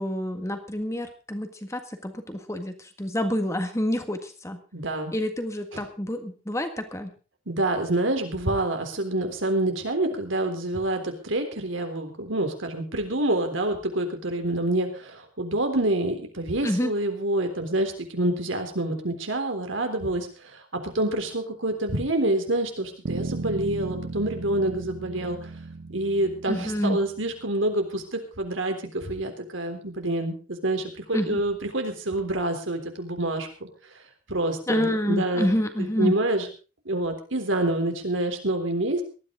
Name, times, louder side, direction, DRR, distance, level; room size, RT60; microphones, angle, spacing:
voice 1, 0.0-4.6 5.1-7.1 16.6-16.9 26.5-27.0 31.1-31.4 34.7-36.2, equal, 15° left, 7 dB, 1.6 m, -28 dB
voice 2, 4.7-5.1 5.7-5.8 7.5-25.5 25.9-33.7 34.3-35.5 35.8-36.5 36.9-39.0, right 1 dB, 85° right, 5 dB, 3.6 m, -27 dB
sound 1, 23.1-27.4, right 3 dB, 70° right, 0.7 m, -35 dB
19.0 x 13.0 x 3.8 m, 0.34 s
head